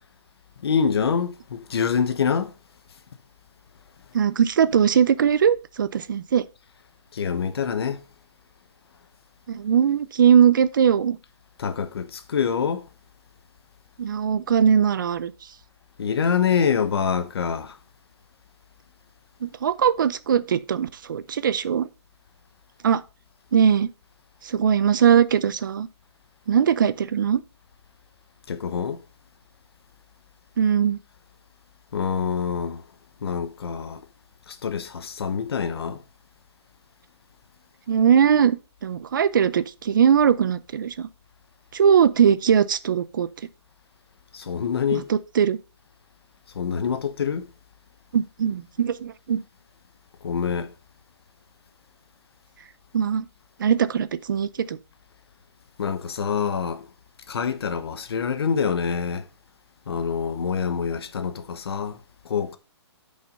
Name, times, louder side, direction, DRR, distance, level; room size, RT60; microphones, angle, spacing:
voice 1, 0.6-2.5 7.1-8.0 11.6-12.8 16.0-17.8 28.5-29.0 31.9-32.8 33.2-34.1 34.5-36.0 44.3-45.1 46.5-47.5 50.2-50.7 55.8-56.9 57.3-59.3 59.9-62.0 62.2-62.6, left 6 dB, 60° left, 1.1 m, -26 dB
voice 2, 4.1-6.4 9.5-11.2 14.0-15.3 19.4-21.9 22.8-23.0 23.5-23.9 24.4-25.9 26.5-27.4 30.6-31.0 37.9-41.1 41.7-43.3 44.9-45.6 48.1-49.4 52.9-53.3 53.6-54.8, right 8 dB, 45° right, 0.5 m, -20 dB
6.8 x 5.6 x 5.2 m
hypercardioid pair, 170°, 15 cm